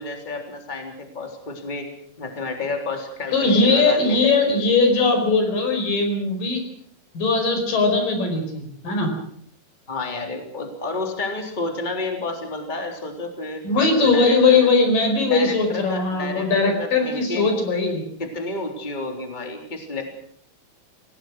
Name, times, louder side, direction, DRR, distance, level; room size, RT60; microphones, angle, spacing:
voice 1, 0.0-1.9 2.2-4.2 9.9-13.6 14.0-14.7 15.2-17.5 18.2-20.0, left 3 dB, 15° left, 3 dB, 3.4 m, -31 dB
voice 2, 3.3-6.6 7.1-9.1 13.6-18.0, left 3 dB, 75° left, 5 dB, 6.4 m, -19 dB
27.5 x 18.0 x 6.3 m, 0.63 s
omnidirectional pair, 3.9 m